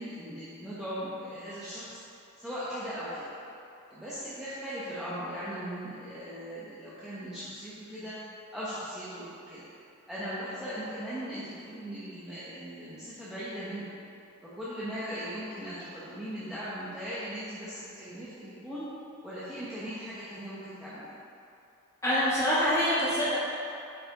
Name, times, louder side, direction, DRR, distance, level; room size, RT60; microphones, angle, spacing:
voice 1, 0.0-2.0 2.4-3.3 3.9-8.2 8.5-9.7 10.1-13.8 14.5-18.9 19.2-21.1, equal, 5° right, -12 dB, 1.0 m, -38 dB
voice 2, 22.0-23.4, equal, 15° left, -9 dB, 1.6 m, -25 dB
7.5 x 4.8 x 4.1 m, 2.7 s
head